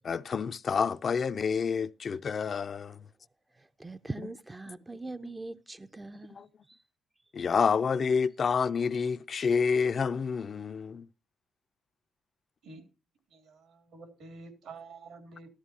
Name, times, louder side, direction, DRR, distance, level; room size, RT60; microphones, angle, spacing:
voice 1, 0.0-3.0 6.3-6.5 7.3-11.1, left 6 dB, 45° left, 0.5 m, -28 dB
voice 2, 3.5-6.8, right 2 dB, 15° right, 0.5 m, -42 dB
voice 3, 13.3-15.5, right 3 dB, 75° right, 3.0 m, -48 dB
13.5 x 13.0 x 2.9 m
cardioid pair, 90°, 0 cm